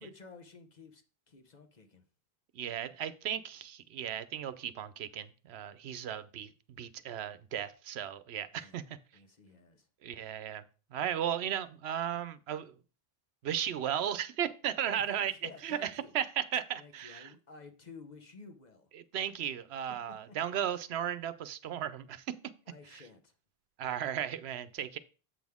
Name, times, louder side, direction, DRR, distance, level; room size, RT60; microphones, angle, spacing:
voice 1, 0.0-2.0 8.5-8.8 9.1-9.9 14.9-16.1 16.8-18.9 20.3-20.4 22.7-23.3, left 4 dB, 45° left, 1.0 m, -53 dB
voice 2, 2.5-9.0 10.0-10.6 10.9-12.7 13.4-15.3 15.6-17.3 18.9-22.2 22.9-23.0 23.8-25.0, right 9 dB, 80° right, 0.9 m, -35 dB
7.9 x 6.1 x 3.5 m
omnidirectional pair, 1.1 m